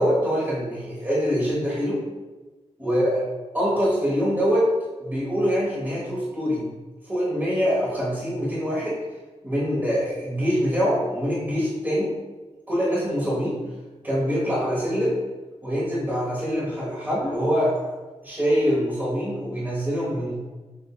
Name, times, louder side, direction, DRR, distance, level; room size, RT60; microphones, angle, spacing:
voice 1, 0.0-2.0 2.8-3.2 3.5-4.7 5.0-6.7 7.0-9.0 9.4-12.1 12.7-13.6 14.0-15.2 15.6-17.8 18.2-20.4, equal, 15° right, -8 dB, 1.2 m, -24 dB
6.7 x 2.6 x 2.4 m, 1.2 s
wide cardioid pair, 155°, 11 cm